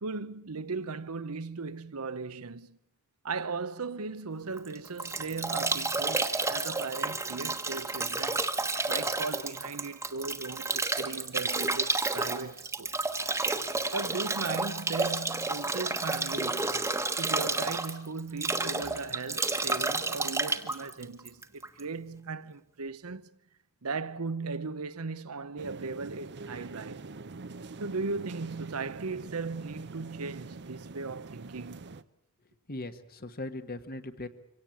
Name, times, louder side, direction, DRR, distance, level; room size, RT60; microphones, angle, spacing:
voice 1, 0.0-2.8 3.2-8.4 8.9-12.9 13.9-16.7 17.2-23.3 23.8-27.1 27.8-31.9, right 4 dB, 80° right, 0.9 m, -37 dB
Bathtub (filling or washing) / Drip / Trickle dribble, 4.6-21.8, right 3 dB, 15° right, 1.3 m, -31 dB
sound 1, 25.6-32.0, right 3 dB, 50° right, 0.8 m, -45 dB
voice 2, 32.7-34.3, left 2 dB, 45° left, 1.6 m, -39 dB
24.5 x 17.5 x 8.7 m
head